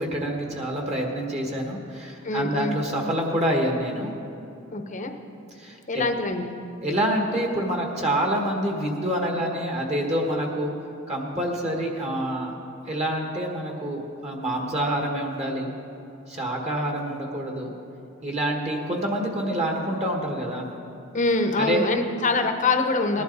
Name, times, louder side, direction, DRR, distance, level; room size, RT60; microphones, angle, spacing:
voice 1, 0.0-4.1 5.6-6.0 6.8-10.7 11.1-12.5 12.9-15.7 16.3-17.7 18.2-20.7 21.6-21.8 23.1-23.2, right 1 dB, 30° right, 0 dB, 1.6 m, -27 dB
voice 2, 2.2-2.8 4.7-5.1 5.9-6.5 21.1-23.2, left 3 dB, 35° left, 6 dB, 0.8 m, -24 dB
19.0 x 11.5 x 4.0 m, 2.7 s
head